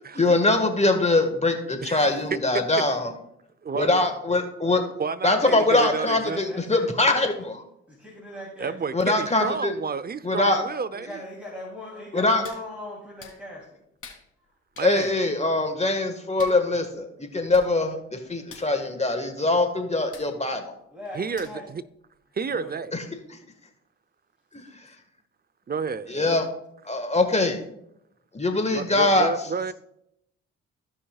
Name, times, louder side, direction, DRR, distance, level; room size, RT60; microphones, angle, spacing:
voice 1, 0.1-3.1 3.7-4.8 5.2-7.6 8.9-9.7 10.2-10.6 12.1-12.4 14.8-20.7 23.3-23.4 24.5-24.6 26.1-26.4 26.8-27.6 28.3-29.3, left 2 dB, 20° left, 1.6 m, -23 dB
voice 2, 1.8-2.6 3.6-3.9 5.0-6.4 8.6-11.2 14.8-15.1 21.1-21.8 22.3-22.9 25.7-26.5 28.7-29.7, right 5 dB, 30° right, 0.6 m, -31 dB
voice 3, 5.4-7.3 7.9-8.8 10.9-13.7 20.9-21.6 22.5-22.8, left 1 dB, 5° right, 3.0 m, -39 dB
Hands, 12.4-12.6 13.2-13.4 14.0-14.2 14.7-14.9 16.4-16.6 17.3-17.4 17.5-17.7 18.0-18.1 18.4-18.7 20.1-20.3 21.4-21.7 22.2-22.3, left 5 dB, 45° left, 2.7 m, -44 dB
16.0 x 5.6 x 2.4 m
supercardioid pair, 60°, 31 cm